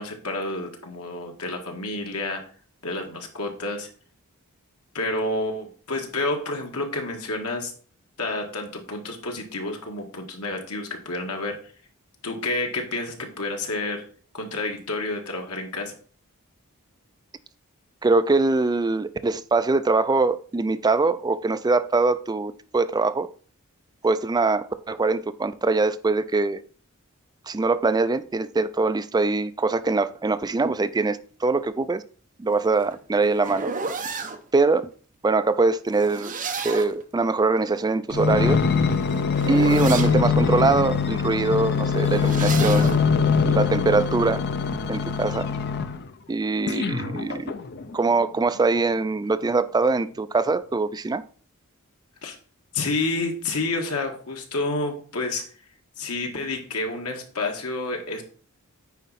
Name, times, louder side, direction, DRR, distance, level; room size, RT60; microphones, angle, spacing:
voice 1, 0.0-2.4 2.8-3.9 4.9-7.7 8.2-11.6 12.2-14.0 14.3-16.0 52.2-52.4 52.7-55.4 56.0-58.2, left 2 dB, 85° left, 1.8 m, -29 dB
voice 2, 18.0-23.3 24.0-26.6 27.5-32.0 32.4-33.7 34.5-34.9 35.2-36.3 36.6-38.6 39.5-42.9 43.4-44.4 44.9-45.5 46.3-47.5 47.9-51.2, right 3 dB, 20° right, 0.4 m, -23 dB
sound 1, 32.6-34.4 35.9-37.0 38.5-40.2 41.9-43.0, right 4 dB, 35° right, 0.9 m, -32 dB
sound 2, 38.1-46.1 46.7-47.9 48.6-48.7, left 5 dB, 50° left, 0.6 m, -23 dB
9.3 x 4.7 x 4.1 m
head